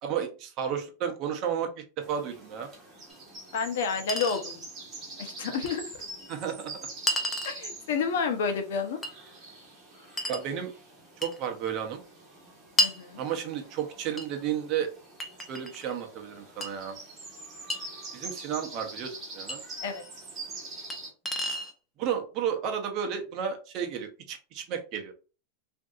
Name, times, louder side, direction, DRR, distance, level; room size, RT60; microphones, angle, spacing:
voice 1, 0.0-1.7 2.0-2.7 6.3-6.7 10.3-10.7 11.2-12.0 13.2-14.9 15.5-17.0 18.1-19.6 22.0-25.1, right 8 dB, 35° right, 3 dB, 0.6 m, -32 dB
sound 1, 2.0-21.1, right 2 dB, 15° right, 1.2 m, -45 dB
Chink clink, 3.1-3.2 4.1-4.4 5.7-5.8 7.1-7.6 9.0-9.2 10.2-10.5 11.2-11.4 12.8-13.0 14.2-14.3 15.2-15.9 16.6-16.7 17.7-17.8 19.5-19.6 20.9-21.0 21.2-21.7, left 1 dB, 10° left, 0.5 m, -30 dB
voice 2, 3.5-4.7 5.2-5.8 7.4-9.0 12.8-13.2 19.8-20.0, left 5 dB, 75° left, 7 dB, 0.7 m, -30 dB
3.6 x 2.6 x 2.4 m, 0.35 s
supercardioid pair, 170°, 0 cm